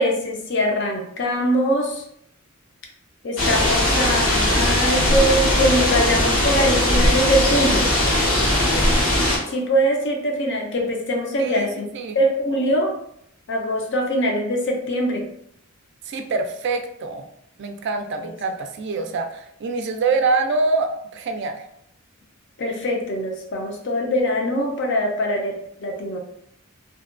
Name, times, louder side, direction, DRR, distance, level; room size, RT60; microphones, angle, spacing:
voice 1, 0.0-2.0 3.2-7.9 9.5-11.9 12.1-12.9 13.5-15.2 22.6-25.5 25.8-26.2, equal, 55° left, 1 dB, 0.5 m, -22 dB
sound 1, 3.4-9.4, left 1 dB, 80° left, 1.1 m, -19 dB
voice 2, 11.4-12.2 16.1-17.3 17.6-21.6, right 3 dB, 55° right, 5 dB, 0.3 m, -25 dB
2.6 x 2.2 x 2.4 m, 0.72 s
head